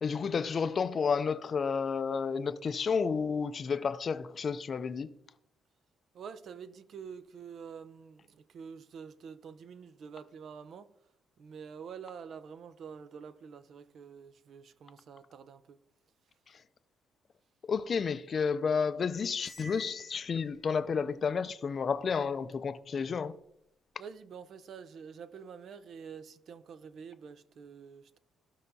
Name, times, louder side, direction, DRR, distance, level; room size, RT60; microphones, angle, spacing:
voice 1, 0.0-5.1 16.5-16.6 17.6-23.4, left 5 dB, 45° left, 0.4 m, -31 dB
voice 2, 6.1-10.9 11.4-15.8 24.0-28.2, right 6 dB, 60° right, 0.5 m, -47 dB
Cymbal, 19.4-20.8, left 2 dB, 25° left, 0.9 m, -50 dB
14.5 x 5.5 x 2.7 m
cardioid pair, 90°, 0 cm